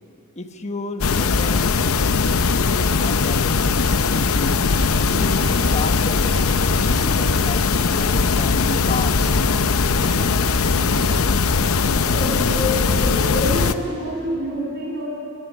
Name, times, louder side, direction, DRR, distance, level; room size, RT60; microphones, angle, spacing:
voice 1, 0.3-4.6 5.1-9.3, left 2 dB, 30° left, 7 dB, 1.2 m, -33 dB
sound 1, 1.0-13.7, left 4 dB, 75° left, 0.8 m, -19 dB
sound 2, 3.9-12.3, right 1 dB, 30° right, 2.3 m, -38 dB
voice 2, 11.8-15.1, left 1 dB, 50° right, -2 dB, 7.2 m, -27 dB
19.5 x 17.5 x 9.8 m, 2.6 s
head